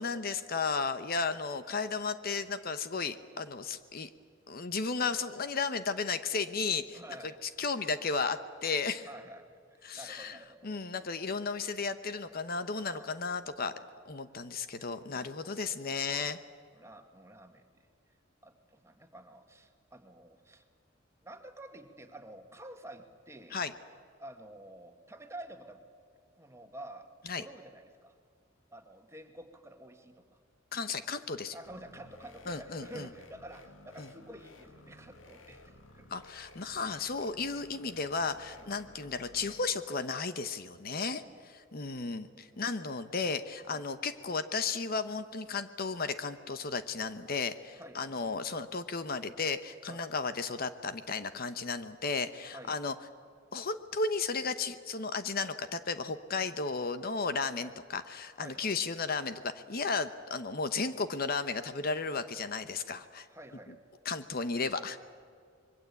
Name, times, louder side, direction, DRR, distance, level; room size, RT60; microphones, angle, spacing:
voice 1, 0.0-4.1 4.5-7.0 7.4-9.1 9.8-10.4 10.6-13.7 14.1-16.4 23.5-23.7 27.3-27.4 30.7-31.5 32.5-33.1 34.0-34.1 36.1-41.2 41.7-52.9 53.5-63.3 64.0-65.0, left 4 dB, 50° left, 11 dB, 1.0 m, -34 dB
voice 2, 6.9-7.4 9.0-10.7 12.8-13.1 13.7-13.9 14.8-15.3 16.1-16.3 16.7-17.9 18.4-20.6 21.2-23.6 24.2-25.8 26.4-27.1 27.4-28.1 28.7-30.3 31.5-36.2 38.5-38.7 40.9-41.4 42.5-42.7 43.7-43.8 47.8-48.2 49.9-50.0 52.5-52.8 57.6-57.7 58.4-58.7 63.3-63.8, right 1 dB, 15° right, 5 dB, 2.0 m, -50 dB
sound 1, 31.6-39.6, left 2 dB, 80° left, 2.2 m, -55 dB
25.5 x 22.5 x 8.4 m, 2.1 s
head